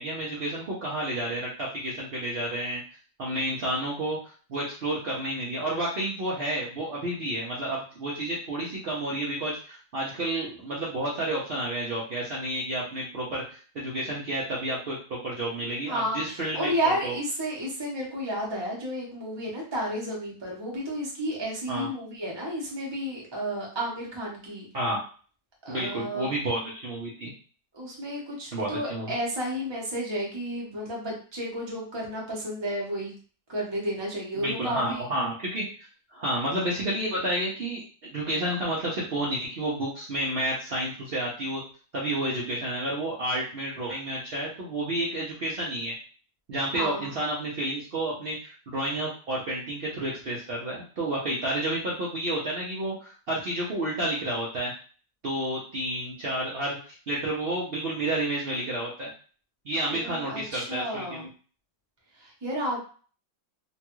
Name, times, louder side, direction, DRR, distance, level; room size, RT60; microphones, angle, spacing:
voice 1, 0.0-2.8 3.2-4.2 4.5-17.2 21.7-21.9 24.7-25.0 25.7-27.3 28.5-29.1 34.3-35.6 36.1-37.8 38.1-41.6 41.9-45.9 46.5-54.7 55.2-59.1 59.6-61.3, right 1 dB, 80° right, -6 dB, 0.5 m, -30 dB
voice 2, 15.9-24.7 25.7-26.2 27.7-33.1 33.5-35.0 46.7-47.1 59.9-61.3 62.2-62.8, equal, 30° right, -3 dB, 0.5 m, -32 dB
3.1 x 2.3 x 3.0 m, 0.40 s
omnidirectional pair, 2.0 m